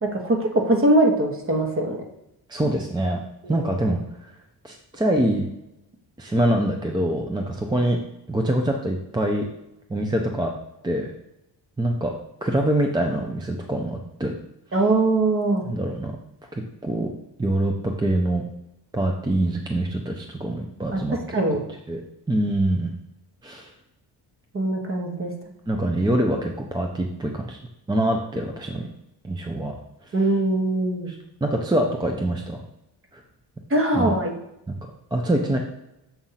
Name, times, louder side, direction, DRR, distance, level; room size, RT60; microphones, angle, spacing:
voice 1, 0.0-2.0 3.4-3.7 14.7-15.7 20.9-21.6 24.5-25.3 30.1-31.1 33.7-34.3, right 2 dB, 30° right, 2 dB, 1.1 m, -22 dB
voice 2, 2.5-3.2 3.5-4.3 4.6-5.5 6.2-8.0 8.3-9.5 9.9-10.5 10.8-11.1 11.8-12.1 12.4-14.4 15.6-16.1 16.5-17.1 17.4-18.4 18.9-21.2 21.9-22.0 22.3-23.0 23.4-23.7 25.7-27.6 27.9-28.9 29.2-29.8 30.0-30.1 31.1-31.2 31.4-32.6 33.1-33.2 33.9-34.2 34.7-34.8 35.1-35.6, right 1 dB, 10° right, 2 dB, 0.5 m, -24 dB
7.2 x 2.5 x 5.6 m, 0.87 s
cardioid pair, 105°, 42 cm